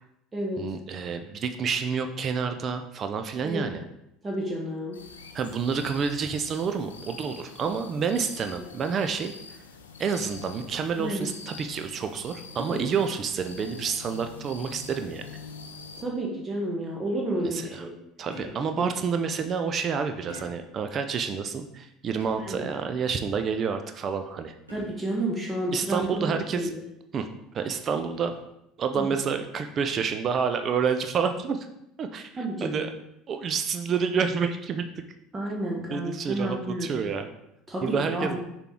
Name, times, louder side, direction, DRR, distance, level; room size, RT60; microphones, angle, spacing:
voice 1, 0.6-3.8 5.3-9.6 10.0-15.3 17.4-17.9 18.2-24.5 25.7-26.7 27.1-27.3 27.5-28.3 28.8-31.7 32.0-32.9 33.3-34.8 35.9-37.3 37.8-38.4, right 6 dB, 40° right, 7 dB, 0.5 m, -29 dB
voice 2, 4.2-5.0 11.0-11.2 12.7-12.8 16.0-17.9 18.8-18.9 22.5-22.6 24.7-26.8 29.0-29.1 32.4-32.9 35.3-37.0 37.7-38.3, right 1 dB, 20° right, -2 dB, 1.4 m, -31 dB
sound 1, 4.9-16.0, left 5 dB, 80° left, 0.6 m, -45 dB
sound 2, 18.3-18.8 20.3-20.8 22.2-22.7 24.7-25.2 26.3-26.7 28.1-28.5, left 1 dB, 85° right, 1.8 m, -46 dB
6.7 x 4.4 x 3.7 m, 0.82 s
figure-of-eight pair, 65°, 0 cm